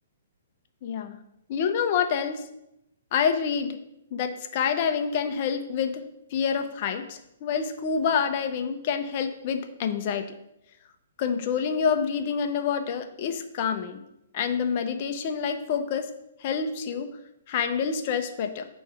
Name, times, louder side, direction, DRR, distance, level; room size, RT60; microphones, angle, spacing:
voice 1, 0.8-1.2 1.5-2.4 3.1-3.8 4.1-10.3 11.2-14.0 14.3-16.1 16.4-17.1 17.5-18.7, left 6 dB, 35° left, 7 dB, 0.6 m, -27 dB
9.0 x 3.1 x 4.9 m, 0.84 s
hypercardioid pair, 170°, 0 cm